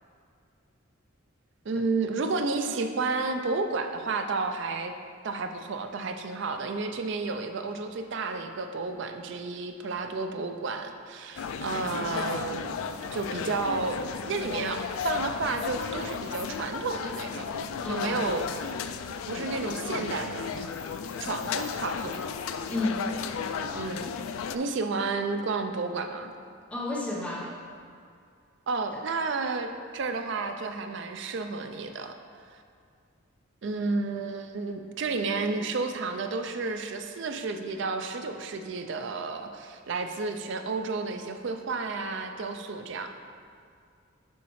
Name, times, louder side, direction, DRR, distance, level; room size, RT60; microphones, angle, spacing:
voice 1, 1.6-4.9 5.2-12.8 13.1-17.5 17.9-18.5 19.3-20.7 21.2-22.2 23.7-24.1 24.5-26.3 28.7-32.2 32.5-32.6 33.6-43.1, right 3 dB, 55° right, 6 dB, 0.4 m, -31 dB
sound 1, 11.4-24.6, left 6 dB, 75° left, 0.3 m, -34 dB
voice 2, 17.8-18.1 22.7-23.1 26.7-27.5, left 2 dB, 5° left, -5 dB, 0.9 m, -31 dB
7.0 x 5.9 x 3.1 m, 2.3 s
head